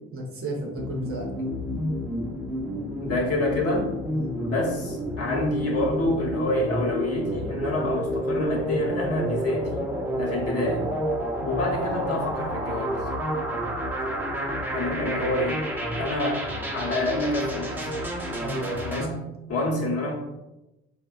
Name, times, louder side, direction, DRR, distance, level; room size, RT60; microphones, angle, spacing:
voice 1, 0.1-1.3 4.1-4.3 11.4-11.6 18.4-19.2, right 1 dB, 40° right, 1 dB, 0.7 m, -33 dB
sound 1, 0.8-19.1, equal, 5° right, 0.7 m, -30 dB
voice 2, 3.0-3.9 4.4-9.9 10.1-10.9 11.5-13.0 14.7-15.6 16.0-16.5 16.7-17.9 18.8-19.2 19.5-20.1, left 1 dB, 45° left, -3 dB, 0.9 m, -27 dB
3.1 x 2.1 x 2.3 m, 0.96 s
hypercardioid pair, 55°, 35 cm